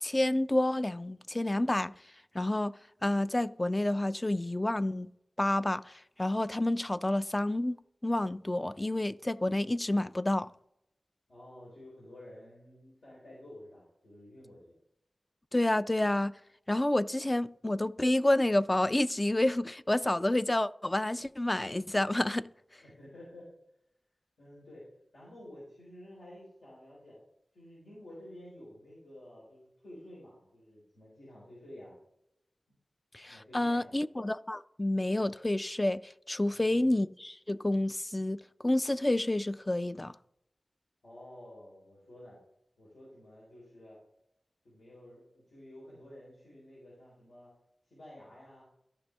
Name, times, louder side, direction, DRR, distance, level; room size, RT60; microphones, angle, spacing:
voice 1, 0.0-1.9 2.3-2.7 3.0-5.1 5.4-5.9 6.2-7.8 8.0-10.5 15.5-16.3 16.7-22.5 33.1-36.0 36.3-40.1, left 1 dB, 25° left, 0.3 m, -29 dB
voice 2, 11.3-14.7 22.8-23.5 24.4-24.8 25.1-27.2 27.5-32.0 33.3-34.0 36.5-37.0 41.0-42.4 42.8-44.0 44.6-47.5 47.9-48.7, left 1 dB, 85° left, 3.7 m, -51 dB
14.0 x 5.3 x 3.4 m
wide cardioid pair, 55°, 0 cm